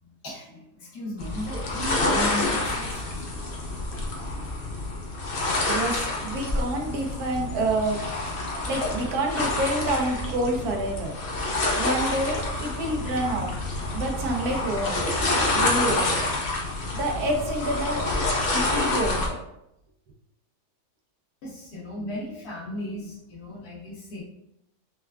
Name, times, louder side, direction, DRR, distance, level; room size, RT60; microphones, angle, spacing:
voice 1, 0.0-3.2 21.4-24.2, left 1 dB, 85° left, -6 dB, 1.5 m, -36 dB
sound 1, 1.2-19.3, left 2 dB, 60° left, 0.6 m, -28 dB
voice 2, 5.7-8.0 8.7-11.1 11.8-13.5 13.9-15.0 15.5-16.3 16.9-18.0 18.5-19.4, right 1 dB, 80° right, 1 dB, 1.2 m, -28 dB
4.5 x 2.2 x 2.3 m, 0.82 s
omnidirectional pair, 1.6 m